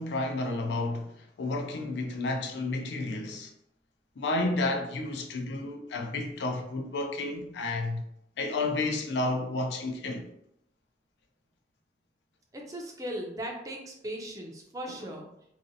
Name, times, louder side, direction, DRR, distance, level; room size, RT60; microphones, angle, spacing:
voice 1, 0.0-3.5 4.2-8.1 8.4-10.3 14.9-15.0, left 2 dB, 85° left, 0.4 m, -31 dB
voice 2, 12.5-15.3, right 1 dB, 20° right, 0.4 m, -38 dB
2.6 x 2.0 x 2.5 m
head